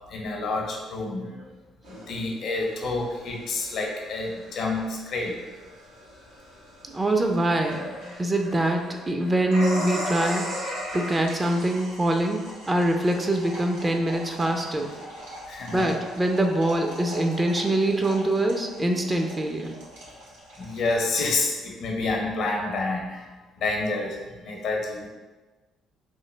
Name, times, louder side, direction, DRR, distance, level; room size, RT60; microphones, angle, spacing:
voice 1, 0.0-1.4 1.9-5.4 15.5-15.9 20.6-23.2 23.6-25.1, left 3 dB, 65° left, 0 dB, 0.6 m, -28 dB
sound 1, 1.8-21.0, equal, 90° right, 0.9 m, -38 dB
voice 2, 6.8-7.9 8.2-10.4 10.9-12.4 12.7-14.9 15.7-19.7, right 1 dB, 25° right, 3 dB, 0.4 m, -24 dB
3.1 x 2.1 x 3.2 m, 1.2 s
hypercardioid pair, 50°, 0 cm